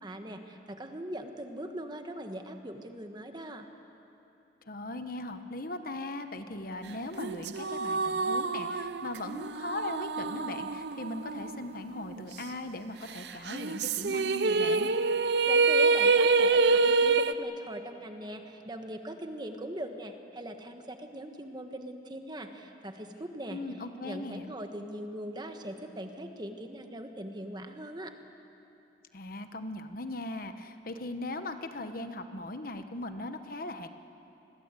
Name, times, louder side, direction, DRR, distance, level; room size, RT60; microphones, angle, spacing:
voice 1, 0.0-3.7 15.4-23.6 24.0-28.1, right 1 dB, 25° right, 5 dB, 1.5 m, -41 dB
voice 2, 4.7-14.9 23.5-24.5 29.1-33.9, left 2 dB, 50° left, 8 dB, 1.2 m, -39 dB
sound 1, 7.2-11.8 12.1-12.2 13.5-17.3, right 4 dB, 65° right, 0.7 m, -26 dB
28.5 x 21.5 x 8.3 m, 2.9 s
head